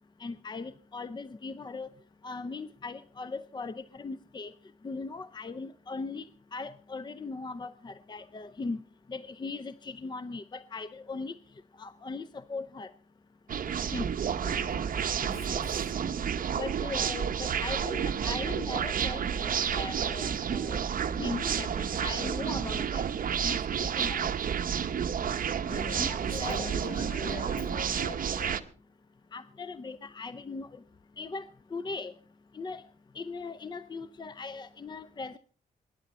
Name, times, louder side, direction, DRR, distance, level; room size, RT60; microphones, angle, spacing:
voice 1, 0.2-1.9 2.2-4.5 4.8-6.2 6.5-8.8 9.1-11.4 11.8-12.9 13.9-14.1 16.5-20.8 21.2-23.1 23.4-23.6 24.0-24.2 26.0-26.7 29.3-30.7 31.2-32.1 32.5-32.8 33.2-35.4, left 3 dB, 30° left, 0.6 m, -39 dB
sound 1, 13.5-28.6, right 8 dB, 60° right, 0.9 m, -30 dB
voice 2, 14.4-15.8 25.7-28.7, left 2 dB, 70° left, 4.1 m, -42 dB
23.0 x 10.5 x 4.2 m
cardioid pair, 100°, 16 cm